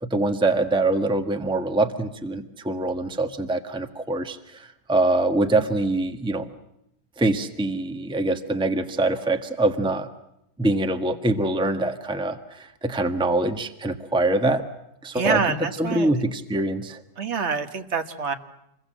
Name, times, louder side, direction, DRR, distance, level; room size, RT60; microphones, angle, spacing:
voice 1, 0.0-6.5 7.2-10.1 10.6-14.6 15.0-15.4 15.8-17.0, right 2 dB, 5° right, 7 dB, 1.3 m, -24 dB
voice 2, 15.1-16.1 17.2-18.3, right 5 dB, 45° right, 7 dB, 1.7 m, -26 dB
27.5 x 22.5 x 7.6 m, 0.82 s
omnidirectional pair, 1.8 m